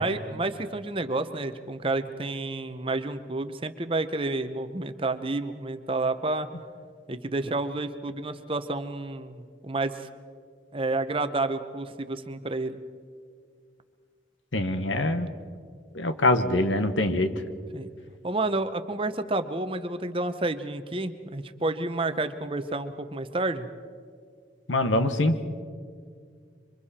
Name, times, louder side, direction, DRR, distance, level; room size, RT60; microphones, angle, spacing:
voice 1, 0.0-6.5 7.1-10.1 10.7-12.8 17.7-17.9 18.2-23.7, right 2 dB, 30° right, 10 dB, 0.8 m, -30 dB
voice 2, 14.5-15.3 15.9-17.3 24.7-25.3, left 1 dB, 85° left, 9 dB, 1.3 m, -24 dB
26.5 x 24.5 x 4.3 m, 2.1 s
head